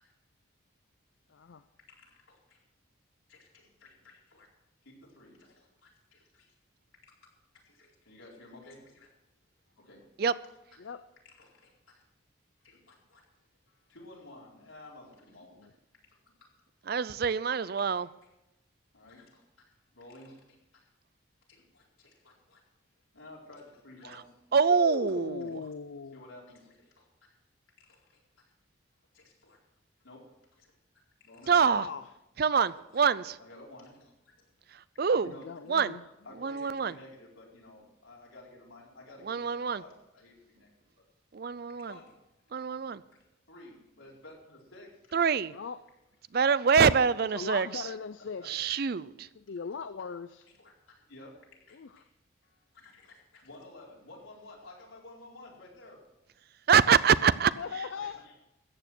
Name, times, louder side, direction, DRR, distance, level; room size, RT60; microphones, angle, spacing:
voice 1, 1.3-1.6 10.8-11.1 15.5-15.7 24.7-26.2 31.6-32.1 35.2-36.1 45.5-45.8 47.2-48.5 49.5-50.5 51.7-52.0 57.6-58.3, left 5 dB, 70° left, 0.5 m, -39 dB
voice 2, 1.9-2.6 3.3-4.5 4.8-6.5 7.0-9.1 9.8-10.0 10.4-10.5 11.2-12.0 12.6-13.2 13.7-15.6 16.1-16.5 17.8-18.3 18.9-19.4 19.9-20.9 21.5-22.6 23.1-24.4 26.1-27.1 27.8-28.2 29.1-29.6 30.0-30.3 30.6-30.7 31.2-31.6 32.6-33.0 33.4-34.5 35.2-35.5 36.2-40.7 41.8-42.2 43.1-45.2 48.4-48.5 49.6-49.7 50.6-52.0 52.4-56.0 57.9-58.3, left 2 dB, 90° left, 4.4 m, -53 dB
voice 3, 16.9-18.1 24.5-25.6 31.5-31.9 32.4-33.4 35.0-35.3 35.7-35.9 36.4-37.0 39.2-39.8 41.3-41.9 42.5-43.0 45.1-45.5 46.3-47.7 48.5-49.0 56.7-57.5, right 6 dB, 50° right, 0.4 m, -25 dB
14.0 x 9.1 x 6.2 m
head